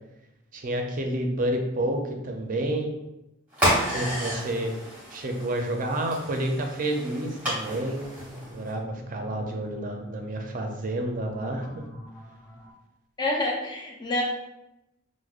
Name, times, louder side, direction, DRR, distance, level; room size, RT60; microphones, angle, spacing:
voice 1, 0.5-2.9 3.9-4.7 5.1-8.0 8.5-11.9, right 1 dB, 40° right, 3 dB, 0.4 m, -29 dB
sound 1, 3.5-8.7, equal, 10° right, 0.9 m, -31 dB
sound 2, 7.4-12.7, left 1 dB, 55° left, 1.0 m, -45 dB
voice 2, 13.2-14.2, left 1 dB, 20° left, -1 dB, 0.4 m, -27 dB
4.6 x 2.1 x 2.4 m, 0.89 s
head